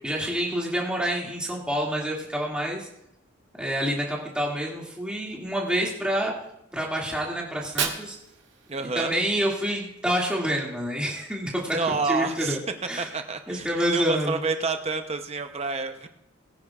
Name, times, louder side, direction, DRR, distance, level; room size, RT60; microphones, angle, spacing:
voice 1, 0.0-2.9 3.6-6.3 6.7-8.2 9.0-12.6 12.9-13.1 13.5-14.4, equal, 5° right, -3 dB, 2.2 m, -27 dB
Fire, 7.5-9.5, right 6 dB, 55° right, 1.7 m, -34 dB
voice 2, 8.7-9.1 11.7-12.6 13.0-16.1, right 4 dB, 30° right, 7 dB, 0.7 m, -29 dB
21.5 x 10.0 x 2.4 m, 0.80 s
head